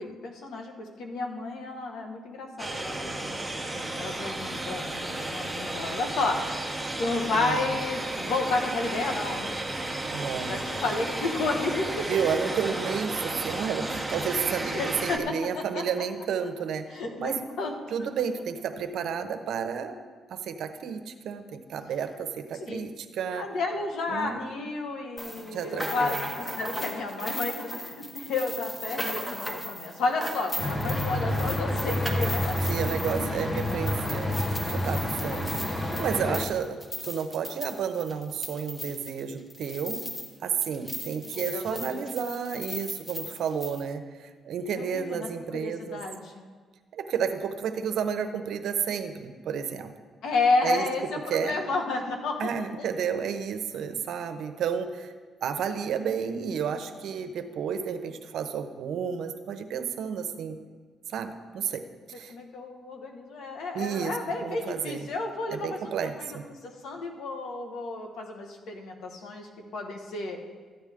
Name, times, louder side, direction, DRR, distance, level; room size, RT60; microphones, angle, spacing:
voice 1, 0.0-3.4 3.7-6.5 7.0-9.5 10.4-12.2 14.6-15.3 15.7-15.8 16.9-17.8 22.6-22.8 23.3-26.2 26.6-32.6 36.2-36.4 41.3-42.0 44.7-46.5 50.2-52.9 62.3-66.3 66.6-70.4, left 3 dB, 75° left, 3 dB, 1.5 m, -31 dB
sound 1, 2.6-15.2, right 2 dB, 5° right, 1.2 m, -33 dB
voice 2, 7.3-7.7 10.1-10.6 12.1-17.4 17.9-20.0 20.3-23.4 24.1-24.5 25.5-26.3 32.7-40.0 40.4-46.0 46.9-49.9 50.6-50.8 51.3-51.6 52.4-55.1 55.4-60.6 61.1-62.3 63.7-65.1 65.5-66.5, right 7 dB, 70° right, 8 dB, 0.8 m, -31 dB
sound 2, 25.2-40.4 40.6-43.8, left 1 dB, 10° left, 1.5 m, -37 dB
sound 3, 30.6-36.5, left 1 dB, 30° left, 1.1 m, -29 dB
14.0 x 8.9 x 3.7 m, 1.5 s
cardioid pair, 90°, 0 cm